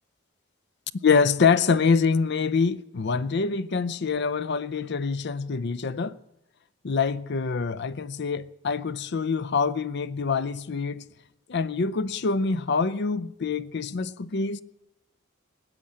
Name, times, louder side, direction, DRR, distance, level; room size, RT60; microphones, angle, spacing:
voice 1, 1.0-6.2 6.8-11.0 11.5-14.6, left 5 dB, 55° left, 0.6 m, -25 dB
19.5 x 7.6 x 8.7 m
head